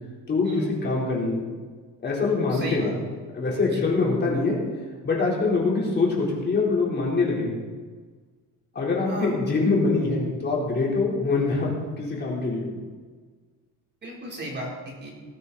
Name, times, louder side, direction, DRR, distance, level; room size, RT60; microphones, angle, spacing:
voice 1, 0.3-1.4 2.0-3.1 3.3-4.6 5.0-7.6 8.7-12.7, left 3 dB, 30° left, -4 dB, 4.2 m, -24 dB
voice 2, 2.5-3.0 3.7-3.8 9.1-9.3 14.0-15.1, right 1 dB, 30° right, -2 dB, 3.8 m, -34 dB
19.0 x 12.5 x 4.3 m, 1.5 s
cardioid pair, 155°, 33 cm